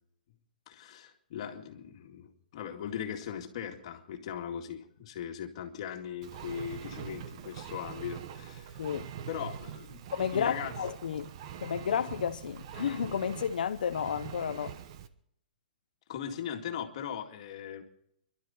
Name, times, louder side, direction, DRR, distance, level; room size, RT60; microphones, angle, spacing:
voice 1, 0.7-8.8 9.3-10.0 10.3-10.7 16.1-17.8, left 8 dB, 40° left, 2.2 m, -39 dB
Engine, 6.2-15.1, right 9 dB, 40° right, 0.9 m, -43 dB
voice 2, 8.8-9.1 10.1-11.3 11.6-14.8, left 8 dB, 80° left, 0.6 m, -32 dB
24.5 x 12.0 x 4.3 m
hypercardioid pair, 170°, 5 cm